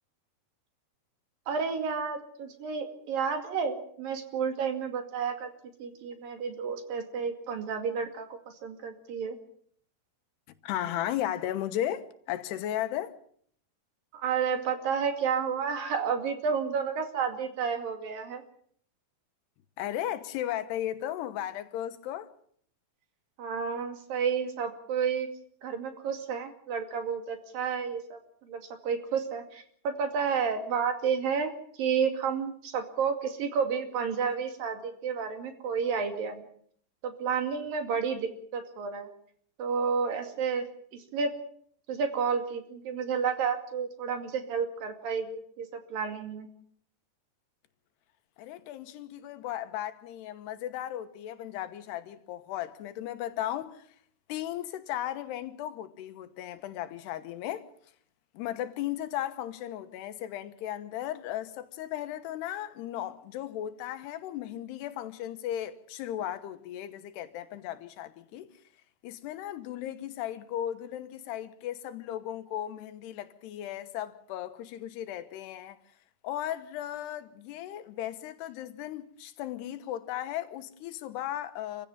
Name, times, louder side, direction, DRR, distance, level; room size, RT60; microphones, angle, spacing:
voice 1, 1.5-5.5 5.8-8.3 8.6-9.4 14.1-18.4 23.4-25.3 25.6-28.2 28.5-31.5 31.8-36.4 37.0-39.1 39.6-40.7 40.9-41.4 41.9-46.5, right 6 dB, 60° right, 4.0 m, -31 dB
voice 2, 10.6-13.2 19.8-22.3 48.4-53.9 54.3-57.7 58.3-68.5 69.0-75.8 76.2-81.9, left 12 dB, 90° left, 3.2 m, -36 dB
27.5 x 15.5 x 7.3 m
omnidirectional pair, 4.7 m